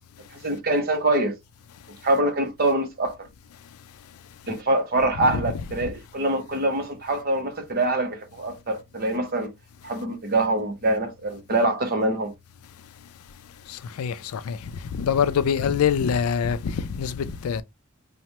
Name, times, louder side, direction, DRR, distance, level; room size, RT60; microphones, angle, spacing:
voice 1, 0.4-1.3 2.0-3.2 4.5-9.5 9.8-12.3, right 2 dB, 45° right, 0.8 m, -24 dB
voice 2, 5.2-5.6 14.0-14.6 14.9-17.6, left 7 dB, 80° left, 0.4 m, -24 dB
3.1 x 2.1 x 2.8 m
head